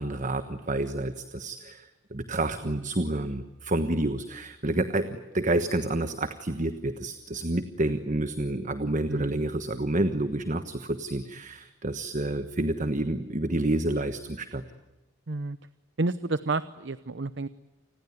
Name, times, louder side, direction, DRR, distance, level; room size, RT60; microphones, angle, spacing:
voice 1, 0.0-14.6, right 2 dB, 40° right, 10 dB, 1.3 m, -29 dB
voice 2, 9.1-9.4 15.3-15.6 16.0-17.5, right 3 dB, 60° right, 14 dB, 0.8 m, -30 dB
29.5 x 20.5 x 9.5 m, 1.1 s
head